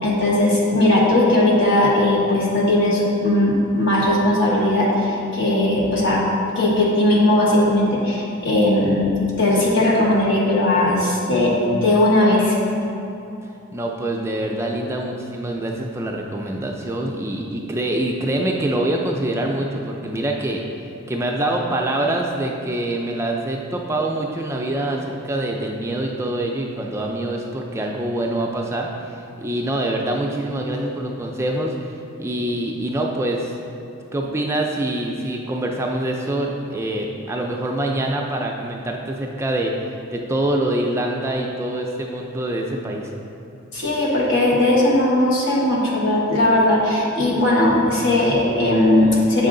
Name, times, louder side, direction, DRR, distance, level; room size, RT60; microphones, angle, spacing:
voice 1, 0.0-6.2 6.5-12.5 43.7-49.5, left 1 dB, 60° left, -4 dB, 1.4 m, -18 dB
voice 2, 13.7-20.6 21.1-33.6 34.1-39.7 40.1-43.1, right 1 dB, 15° right, 0 dB, 0.4 m, -25 dB
7.5 x 5.4 x 3.8 m, 2.8 s
head